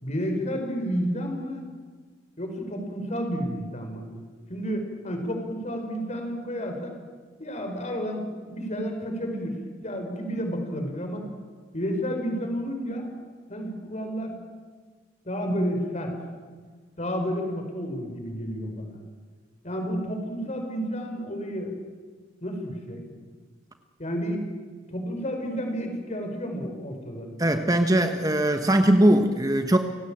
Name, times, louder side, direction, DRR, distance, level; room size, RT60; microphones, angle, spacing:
voice 1, 0.0-1.7 2.4-4.1 4.5-7.0 7.4-9.5 9.8-11.3 11.7-13.1 13.5-14.4 15.2-16.1 17.0-19.0 19.6-21.7 22.4-23.0 24.0-24.5 24.9-27.3, equal, 35° left, 4 dB, 5.0 m, -31 dB
voice 2, 27.4-29.8, right 1 dB, 20° right, 6 dB, 1.2 m, -20 dB
29.5 x 17.0 x 8.9 m, 1.5 s
head